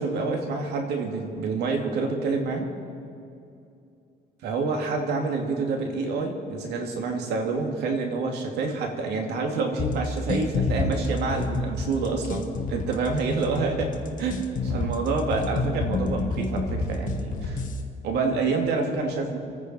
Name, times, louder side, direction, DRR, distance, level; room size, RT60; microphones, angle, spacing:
voice 1, 0.0-2.7 4.4-17.6 18.0-19.4, right 4 dB, 80° right, 2 dB, 2.7 m, -27 dB
sound 1, 9.8-17.8, left 3 dB, 50° left, 1.6 m, -29 dB
27.5 x 9.6 x 4.5 m, 2.5 s
cardioid pair, 110°, 17 cm